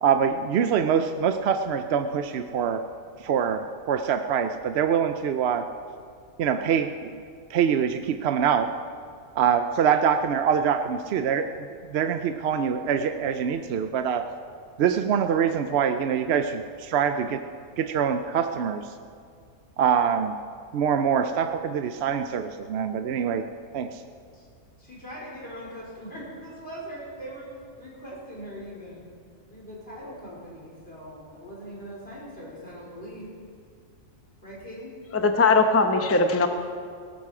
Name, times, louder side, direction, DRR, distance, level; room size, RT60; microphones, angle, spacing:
voice 1, 0.0-2.8 3.2-5.7 6.4-7.2 7.5-8.7 9.4-14.3 14.8-17.5 17.8-18.9 19.8-20.3 20.7-23.5 23.7-24.0, right 7 dB, 60° right, 8 dB, 0.7 m, -24 dB
voice 2, 24.8-27.5 27.8-29.0 29.5-33.3 34.4-35.0, equal, 45° left, -5 dB, 4.7 m, -41 dB
voice 3, 35.1-36.5, left 3 dB, 15° left, 6 dB, 0.6 m, -20 dB
18.0 x 12.5 x 4.9 m, 2.2 s
omnidirectional pair, 1.5 m